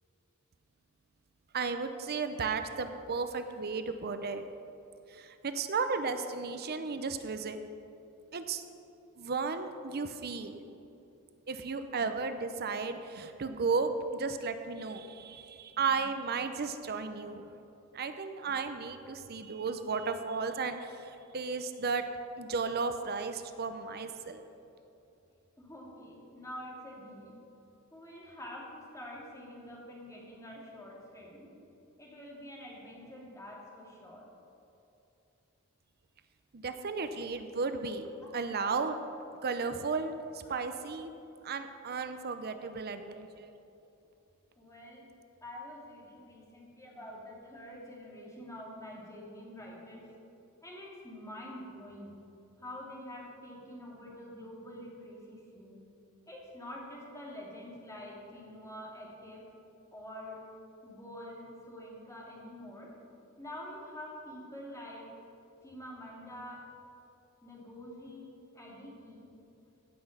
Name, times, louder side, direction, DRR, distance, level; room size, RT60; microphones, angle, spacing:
voice 1, 1.5-4.4 5.1-7.6 8.3-8.6 9.2-10.6 11.5-17.6 17.9-22.0 22.4-24.4 36.5-38.1 38.3-39.0 39.4-41.1 41.4-43.5, right 4 dB, 45° right, 9 dB, 0.6 m, -34 dB
voice 2, 25.6-27.3 27.9-31.5 32.0-34.3 38.2-38.3 44.6-45.0 45.4-50.0 50.6-52.1 52.6-55.8 56.3-59.4 59.9-60.4 60.8-62.9 63.4-65.1 65.6-66.6 67.4-68.3 68.5-69.2, left 1 dB, 15° left, -4 dB, 2.5 m, -46 dB
16.0 x 6.1 x 6.6 m, 2.8 s
head